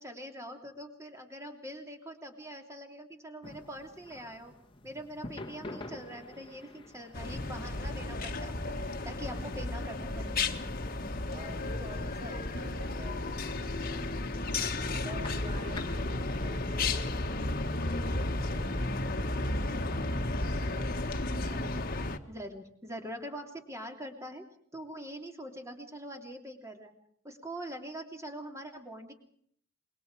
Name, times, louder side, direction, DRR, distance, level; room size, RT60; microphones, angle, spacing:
voice 1, 0.0-4.5 4.8-8.7 9.0-10.4 22.3-24.4 24.7-26.9 27.2-29.1, equal, 15° right, 4 dB, 3.1 m, -43 dB
sound 1, 3.4-17.2, left 2 dB, 25° left, 1.5 m, -50 dB
sound 2, 7.1-22.2, left 2 dB, 45° left, 1.6 m, -33 dB
voice 2, 11.3-14.7 15.0-21.0 21.4-21.9, equal, 35° right, 4 dB, 5.5 m, -49 dB
27.0 x 22.5 x 4.8 m, 0.62 s
head